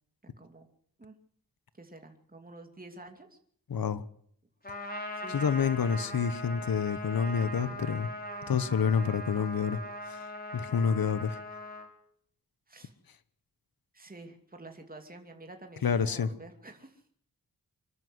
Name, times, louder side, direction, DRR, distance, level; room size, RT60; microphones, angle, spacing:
voice 1, 0.2-0.7 1.0-1.1 1.7-3.4 5.1-5.5 12.7-12.9 13.9-17.0, right 2 dB, 25° right, 4 dB, 2.8 m, -49 dB
voice 2, 3.7-4.0 5.3-8.1 8.5-9.8 10.1-10.3 10.5-11.4 15.8-16.3, left 6 dB, 80° left, 15 dB, 1.2 m, -28 dB
Trumpet, 4.6-11.9, left 1 dB, 25° left, 5.4 m, -40 dB
26.0 x 13.0 x 8.1 m, 0.65 s
cardioid pair, 65°, 34 cm